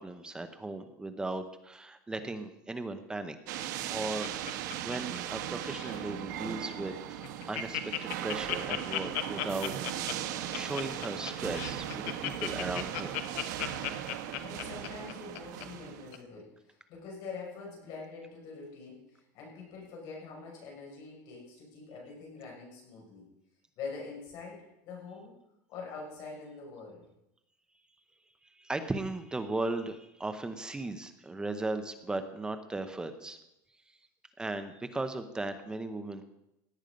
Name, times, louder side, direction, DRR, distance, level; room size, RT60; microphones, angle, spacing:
voice 1, 0.0-3.6 3.9-7.9 8.2-9.7 10.5-13.2 28.6-33.4 33.9-34.0 34.4-36.2, right 2 dB, 10° right, 8 dB, 0.8 m, -37 dB
sound 1, 3.5-16.2, right 11 dB, 90° right, 1.2 m, -38 dB
Laughter, 3.6-5.4 5.6-6.0 6.5-6.6 6.9-7.0 7.2-15.6 16.1-16.2, left 15 dB, 65° left, 1.2 m, -36 dB
voice 2, 14.2-23.3 23.8-25.4 25.7-27.0, left 4 dB, 45° left, -2 dB, 6.3 m, -45 dB
17.5 x 9.2 x 5.2 m, 0.85 s
cardioid pair, 170°, 10 cm